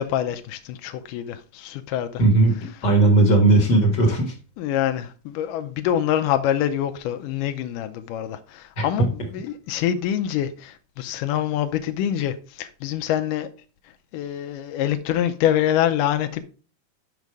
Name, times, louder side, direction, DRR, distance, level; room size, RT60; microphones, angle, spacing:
voice 1, 0.0-2.2 4.6-13.5 14.1-16.4, left 11 dB, 85° left, 2.2 m, -25 dB
voice 2, 2.2-2.5 2.8-4.3 8.8-8.9, right 2 dB, 50° left, 1.4 m, -17 dB
6.5 x 5.2 x 4.7 m
omnidirectional pair, 3.8 m